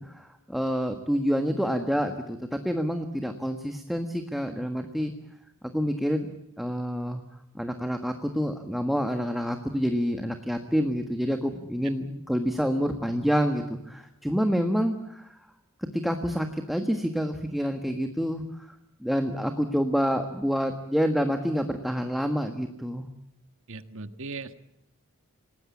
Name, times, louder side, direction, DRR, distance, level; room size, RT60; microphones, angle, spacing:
voice 1, 0.0-5.1 5.6-6.3 6.6-7.2 7.5-15.3 16.0-18.4 19.0-23.1, equal, ahead, 6 dB, 1.5 m, -28 dB
voice 2, 23.7-24.6, right 3 dB, 65° right, 10 dB, 1.6 m, -38 dB
28.0 x 19.0 x 8.4 m, 0.81 s
head